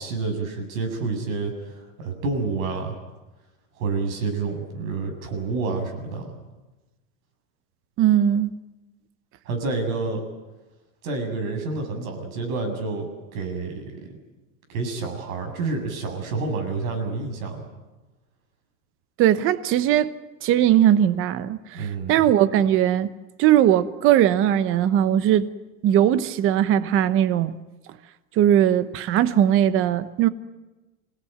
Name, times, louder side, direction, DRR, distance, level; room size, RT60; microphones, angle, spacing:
voice 1, 0.0-3.0 3.8-6.4 9.5-10.2 11.0-14.2 14.7-17.6 21.7-22.2, right 3 dB, 85° right, 7.6 m, -29 dB
voice 2, 8.0-8.6 19.2-20.1 20.4-23.1 23.4-25.5 25.8-27.6 28.4-30.3, right 11 dB, 30° right, 1.0 m, -19 dB
27.5 x 17.5 x 9.4 m
supercardioid pair, 165°, 40 cm